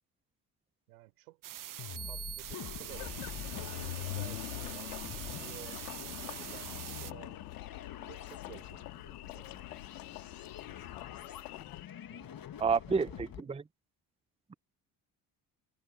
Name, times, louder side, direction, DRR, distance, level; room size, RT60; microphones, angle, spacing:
voice 1, 0.9-1.4 2.1-5.8 6.2-7.4 8.1-9.6 12.1-13.5, right 19 dB, 90° right, 5.4 m, -54 dB
sound 1, 1.4-7.1, right 12 dB, 45° right, 0.8 m, -44 dB
sound 2, 1.8-13.4, left 9 dB, 50° left, 2.1 m, -47 dB
Engine, 2.9-11.9, left 21 dB, 85° left, 3.4 m, -44 dB
voice 2, 12.6-13.6, right 5 dB, 15° right, 0.7 m, -30 dB
hypercardioid pair, 55°, 45 cm